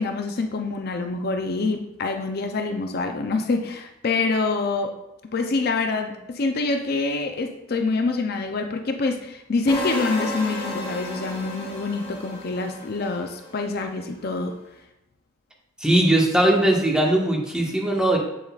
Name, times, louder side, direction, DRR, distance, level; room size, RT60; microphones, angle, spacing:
voice 1, 0.0-4.9 5.3-14.6, left 3 dB, 55° left, 5 dB, 0.5 m, -26 dB
sound 1, 9.7-13.7, left 1 dB, 30° left, 1.7 m, -33 dB
voice 2, 15.8-18.2, right 1 dB, 5° right, -2 dB, 1.3 m, -19 dB
8.0 x 7.0 x 2.4 m, 0.92 s
head